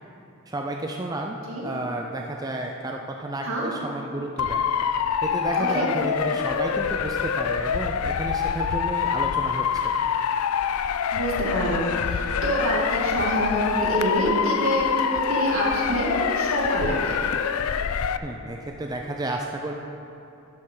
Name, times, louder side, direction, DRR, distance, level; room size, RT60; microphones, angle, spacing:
voice 1, 0.5-1.4 1.6-4.6 5.2-9.9 18.2-19.7, right 2 dB, 15° right, 1 dB, 0.5 m, -31 dB
Motor vehicle (road) / Siren, 4.4-18.2, left 7 dB, 75° left, 0.4 m, -25 dB
voice 2, 5.6-5.9 11.1-17.2, right 1 dB, 70° right, -4 dB, 2.4 m, -26 dB
12.0 x 10.5 x 3.8 m, 2.9 s
head